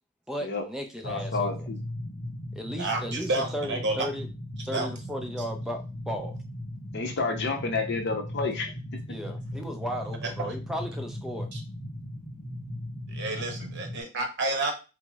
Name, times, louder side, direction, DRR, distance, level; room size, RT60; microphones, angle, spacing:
voice 1, 0.3-1.7 2.6-4.3 4.7-6.4 9.1-11.5, equal, ahead, 3 dB, 0.4 m, -35 dB
voice 2, 1.0-1.8 6.9-8.7, left 3 dB, 50° left, 3 dB, 0.7 m, -30 dB
sound 1, 1.0-14.0, left 1 dB, 30° left, 1.2 m, -37 dB
voice 3, 2.8-4.1 4.7-4.9 10.4-10.5 11.5-11.6 13.1-14.7, right 2 dB, 50° right, 4 dB, 0.8 m, -30 dB
5.8 x 2.0 x 2.3 m, 0.31 s
head